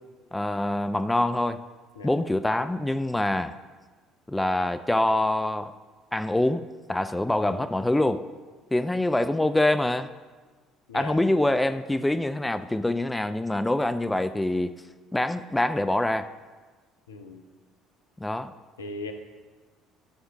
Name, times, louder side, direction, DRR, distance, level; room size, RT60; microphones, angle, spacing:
voice 1, 0.3-1.6 2.0-3.5 4.3-5.7 6.1-8.3 8.7-10.1 10.9-14.7 15.1-16.3 18.2-18.5, left 1 dB, 10° left, 11 dB, 0.3 m, -25 dB
voice 2, 10.9-11.2 17.1-17.4 18.8-19.1, left 3 dB, 75° left, 6 dB, 0.6 m, -38 dB
12.0 x 6.3 x 3.5 m, 1.3 s
figure-of-eight pair, 55°, 0 cm